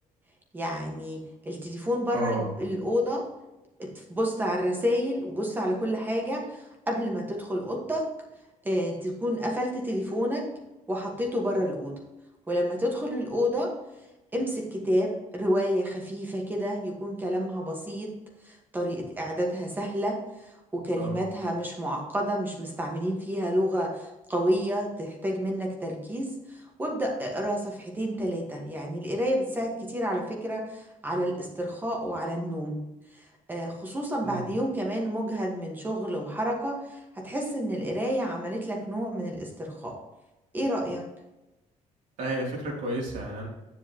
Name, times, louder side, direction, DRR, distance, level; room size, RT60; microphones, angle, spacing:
voice 1, 0.5-3.3 3.8-8.1 8.6-10.4 10.9-12.0 12.5-13.7 14.3-18.1 18.4-20.2 20.7-26.3 26.8-32.8 33.1-33.2 33.5-40.0 40.5-41.0, equal, 15° right, 1 dB, 1.5 m, -29 dB
voice 2, 2.1-2.5 21.0-21.2 34.2-34.4 42.2-43.5, right 1 dB, 65° right, -2 dB, 3.0 m, -31 dB
9.4 x 7.7 x 3.0 m, 1.0 s
cardioid pair, 160°, 13 cm